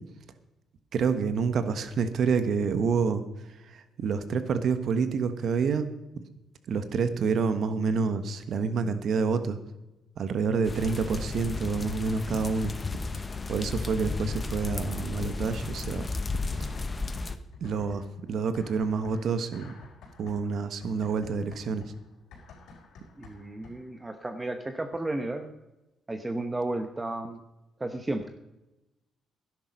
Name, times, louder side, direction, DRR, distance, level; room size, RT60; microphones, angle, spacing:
voice 1, 0.9-3.2 3.6-5.9 6.7-9.6 10.2-12.7 13.5-16.1 17.6-19.7 20.2-21.8, right 5 dB, 65° right, 11 dB, 1.3 m, -28 dB
sound 1, 10.7-17.4, left 3 dB, 25° left, 1.1 m, -33 dB
sound 2, 16.6-17.2 17.5-24.0, left 4 dB, 80° left, 4.7 m, -50 dB
voice 2, 23.2-25.5 26.1-27.4 27.8-28.4, right 2 dB, 20° right, 7 dB, 1.0 m, -33 dB
12.5 x 10.5 x 5.3 m, 0.98 s
cardioid pair, 90°, 0 cm